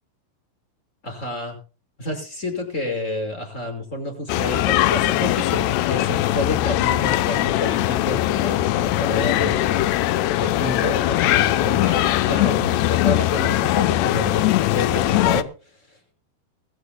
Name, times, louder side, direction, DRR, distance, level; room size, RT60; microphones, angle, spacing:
voice 1, 1.0-1.6 2.0-15.5 15.9-16.0, left 2 dB, 15° left, 5 dB, 5.5 m, -29 dB
sound 1, 4.3-15.4, left 15 dB, 85° left, 2.4 m, -21 dB
22.0 x 15.0 x 2.2 m, 0.35 s
omnidirectional pair, 5.8 m